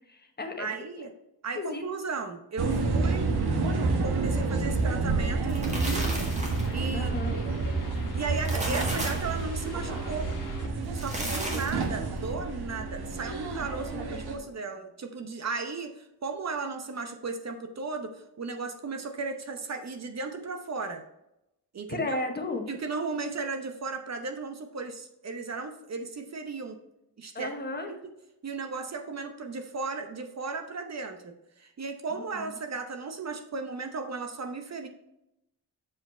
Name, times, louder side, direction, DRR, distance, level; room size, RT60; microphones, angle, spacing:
voice 1, 0.1-0.7 1.5-1.8 6.9-7.4 13.9-14.1 21.9-22.7 27.3-27.9 32.1-32.5, left 2 dB, 25° left, 4 dB, 1.0 m, -34 dB
voice 2, 0.6-1.1 1.4-3.3 4.0-6.1 6.7-7.1 8.1-10.3 10.9-21.0 21.7-22.2 22.7-26.8 27.2-27.5 27.9-28.0 28.4-34.9, right 4 dB, 45° right, 6 dB, 0.8 m, -35 dB
sound 1, 2.6-14.3, right 3 dB, 80° right, 1.4 m, -29 dB
sound 2, 5.3-6.8 8.2-9.3 10.8-11.9, right 1 dB, 20° right, 1.8 m, -35 dB
sound 3, 5.7-10.7, left 4 dB, 55° left, 1.3 m, -45 dB
7.6 x 4.9 x 4.3 m, 0.87 s
wide cardioid pair, 140°, 38 cm